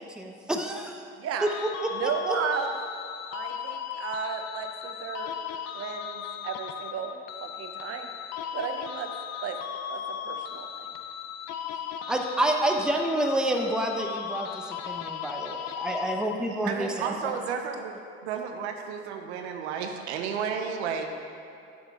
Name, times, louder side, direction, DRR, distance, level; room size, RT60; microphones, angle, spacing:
voice 1, 0.0-1.0 1.4-2.4 12.1-17.4, right 1 dB, ahead, 2 dB, 0.7 m, -29 dB
voice 2, 1.2-1.5 1.9-2.7 3.3-5.3 5.7-8.1 8.5-9.1 9.4-9.6 9.9-10.9, right 7 dB, 45° right, 5 dB, 0.8 m, -34 dB
sound 1, 1.5-16.7, left 9 dB, 55° left, 0.6 m, -37 dB
voice 3, 16.6-17.9 18.2-21.1, right 6 dB, 85° right, 4 dB, 0.6 m, -32 dB
8.0 x 6.3 x 3.6 m, 2.6 s
hypercardioid pair, 70°, 32 cm